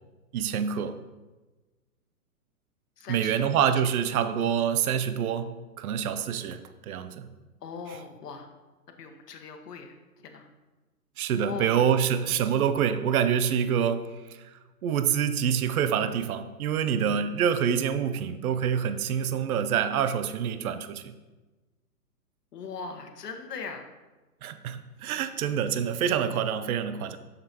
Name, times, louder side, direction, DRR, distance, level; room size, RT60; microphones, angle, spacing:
voice 1, 0.3-1.0 3.1-7.3 11.2-14.1 14.5-21.1 24.4-27.2, right 8 dB, 65° right, 11 dB, 0.6 m, -26 dB
voice 2, 3.0-3.6 7.6-8.5 8.9-10.5 11.4-11.9 15.9-16.1 22.5-23.9, left 5 dB, 75° left, 5 dB, 1.2 m, -40 dB
7.5 x 6.7 x 2.8 m, 1.2 s
hypercardioid pair, 145°, 48 cm